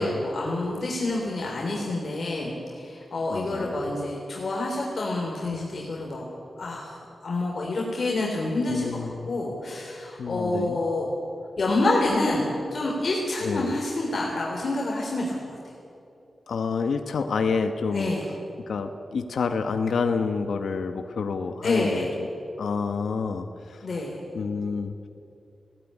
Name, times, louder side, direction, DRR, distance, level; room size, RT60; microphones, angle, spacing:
voice 1, 0.0-6.2 6.6-11.1 11.6-15.6 17.9-18.2 21.6-22.1 23.8-24.2, left 2 dB, 50° left, -2 dB, 3.7 m, -28 dB
voice 2, 3.3-3.8 8.7-9.3 10.2-10.8 13.4-13.7 16.5-18.1 18.7-22.3 22.6-23.9 24.3-25.1, left 5 dB, 90° left, 7 dB, 1.1 m, -28 dB
20.5 x 17.5 x 10.0 m, 2.7 s
wide cardioid pair, 165°, 0 cm